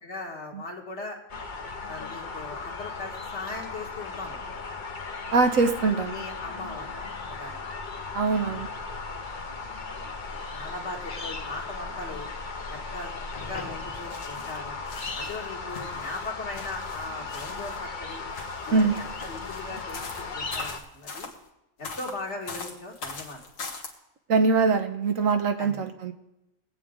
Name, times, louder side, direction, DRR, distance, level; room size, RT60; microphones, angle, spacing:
voice 1, 0.0-1.2 1.9-4.7 5.8-6.9 7.2-7.7 8.4-8.6 10.5-12.3 12.7-13.1 13.4-14.8 15.1-18.2 18.7-21.3 21.8-23.4 25.6-25.9, left 2 dB, 55° left, 0 dB, 2.1 m, -39 dB
sound 1, 1.3-20.8, left 4 dB, 40° left, 1.0 m, -36 dB
voice 2, 5.3-6.2 8.1-8.7 18.7-19.0 24.3-26.1, right 4 dB, 75° right, 6 dB, 1.3 m, -23 dB
sound 2, 13.3-14.6 14.9-17.9 18.3-21.4 21.8-23.9, left 4 dB, 75° left, 1.8 m, -41 dB
20.5 x 8.4 x 3.7 m, 0.90 s
omnidirectional pair, 1.4 m